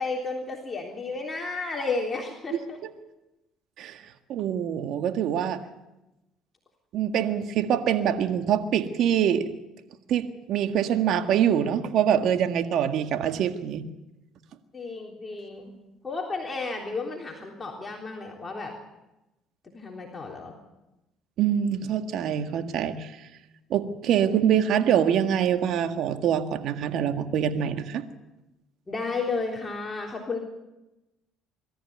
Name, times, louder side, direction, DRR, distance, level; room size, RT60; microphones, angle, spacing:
voice 1, 0.0-2.8 14.7-15.7 16.0-18.7 19.6-20.6 28.9-30.4, left 3 dB, 25° left, 0 dB, 3.5 m, -32 dB
voice 2, 4.3-5.6 6.9-9.5 10.1-13.8 21.4-23.1 23.7-28.0, right 9 dB, 65° right, 7 dB, 1.8 m, -24 dB
23.0 x 14.0 x 9.4 m, 0.98 s
supercardioid pair, 80°, 0 cm